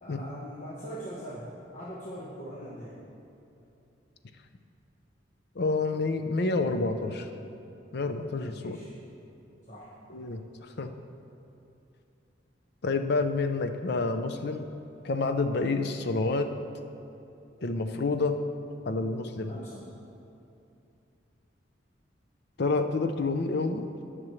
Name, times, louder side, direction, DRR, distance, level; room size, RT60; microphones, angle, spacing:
voice 1, 0.0-2.9 8.5-8.9 9.7-9.9 19.5-19.9, equal, 40° left, -7 dB, 1.2 m, -41 dB
voice 2, 5.6-7.3 7.9-8.8 10.1-10.9 12.8-14.7 15.0-16.5 17.6-18.4 18.9-19.5 22.6-23.9, left 3 dB, 60° left, 7 dB, 0.6 m, -28 dB
18.0 x 6.2 x 3.2 m, 2.7 s
head